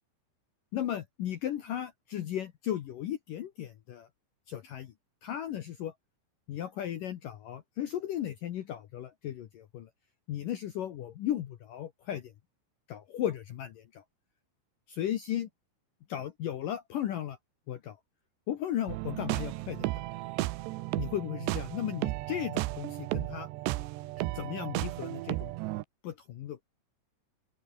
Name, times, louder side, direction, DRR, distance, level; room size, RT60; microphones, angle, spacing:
voice 1, 0.7-4.1 4.5-4.9 5.2-5.9 6.5-9.9 10.3-12.3 12.9-14.0 14.9-15.5 16.1-17.4 17.7-18.0 18.5-20.0 21.0-23.5 24.3-25.5 26.0-26.6, left 11 dB, 80° left, 1.9 m, -35 dB
sound 1, 18.9-25.8, right 18 dB, 85° right, 2.5 m, -34 dB
open air
omnidirectional pair, 5.9 m